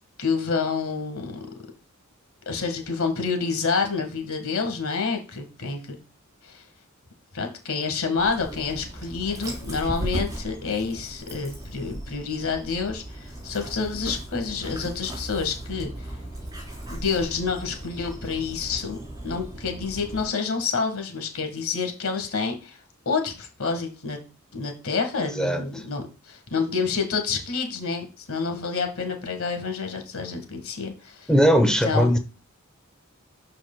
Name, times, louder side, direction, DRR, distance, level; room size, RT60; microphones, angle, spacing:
voice 1, 0.2-1.4 2.4-6.0 6.4-6.6 7.3-15.9 16.9-19.0 19.2-22.8 23.0-24.2 24.5-31.3 31.6-32.1, left 5 dB, 75° left, 1.6 m, -28 dB
Dog, 8.2-20.2, right 1 dB, 20° right, 4.0 m, -37 dB
voice 2, 25.4-25.8 31.3-32.2, equal, 5° left, 0.8 m, -20 dB
12.0 x 4.7 x 2.2 m
head